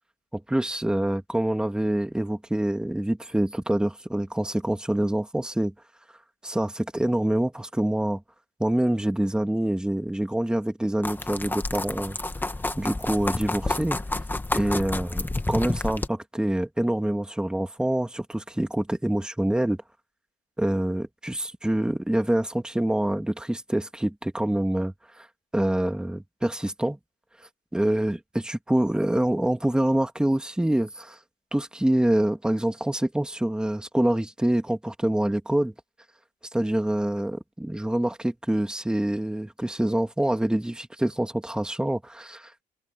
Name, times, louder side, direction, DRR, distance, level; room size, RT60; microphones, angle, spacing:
voice 1, 0.3-5.7 6.4-8.2 8.6-12.2 12.8-14.0 14.5-19.8 20.6-25.3 25.5-27.0 27.7-31.2 31.5-35.7 36.5-42.6, right 1 dB, 5° right, 2.3 m, -26 dB
sound 1, 11.0-16.1, left 2 dB, 10° left, 1.8 m, -29 dB
cardioid pair, 110°, 17 cm